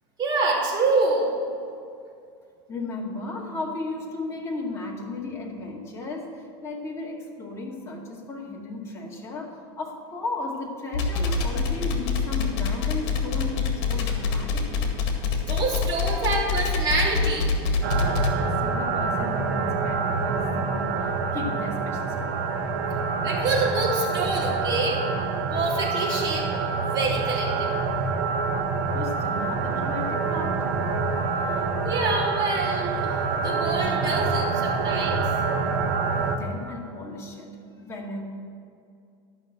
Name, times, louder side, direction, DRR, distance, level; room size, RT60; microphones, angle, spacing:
voice 1, 0.2-1.4 15.5-17.5 23.2-25.0 25.5-27.7 31.8-35.3, right 3 dB, 30° right, -4 dB, 2.9 m, -26 dB
voice 2, 2.7-15.0 18.6-22.4 28.9-30.7 36.3-38.2, left 2 dB, 20° left, -2 dB, 2.1 m, -35 dB
sound 1, 10.9-18.3, left 4 dB, 60° left, 2.0 m, -25 dB
sound 2, 17.8-36.4, right 4 dB, 65° right, 1.3 m, -26 dB
12.5 x 6.4 x 7.8 m, 2.4 s
supercardioid pair, 145°, 14 cm